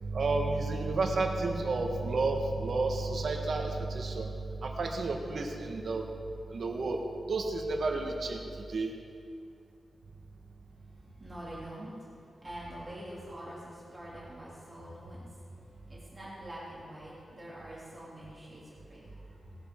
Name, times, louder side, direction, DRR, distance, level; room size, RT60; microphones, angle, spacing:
voice 1, 0.0-4.3 4.6-6.1 6.5-7.0 7.3-8.4 8.7-8.9, right 3 dB, 50° right, 2 dB, 1.4 m, -31 dB
voice 2, 10.9-12.1 12.3-15.3 15.6-19.6, right 1 dB, 15° right, -8 dB, 3.0 m, -45 dB
18.5 x 11.5 x 3.7 m, 2.5 s
wide cardioid pair, 165°, 0 cm